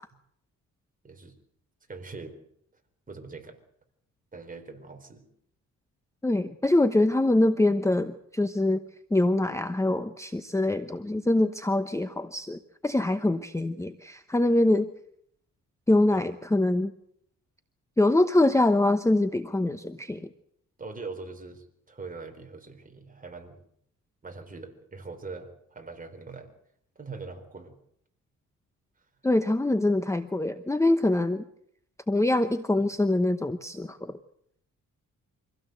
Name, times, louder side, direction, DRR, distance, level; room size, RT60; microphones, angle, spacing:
voice 1, 1.9-2.4 3.1-3.6 4.3-5.2 16.1-16.3 20.8-23.6 24.2-26.5 27.0-27.8, right 4 dB, 25° right, 5 dB, 4.3 m, -42 dB
voice 2, 6.2-8.8 9.1-14.9 15.9-16.9 18.0-20.2 29.2-31.4 32.1-34.2, left 2 dB, 10° left, 10 dB, 0.9 m, -24 dB
25.0 x 16.5 x 7.9 m, 0.72 s
cardioid pair, 110°, 31 cm